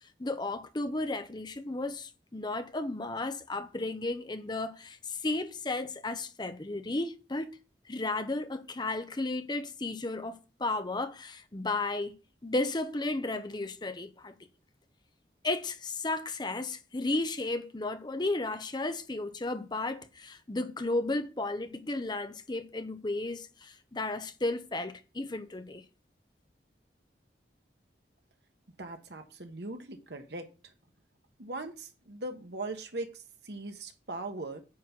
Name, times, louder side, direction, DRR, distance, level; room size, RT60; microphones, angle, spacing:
voice 1, 0.0-7.5 7.9-12.2 12.4-14.3 15.4-25.8, left 2 dB, 25° left, 0.7 m, -34 dB
voice 2, 28.8-30.7 31.4-34.6, right 2 dB, 70° right, 1.4 m, -40 dB
9.5 x 4.1 x 6.0 m
head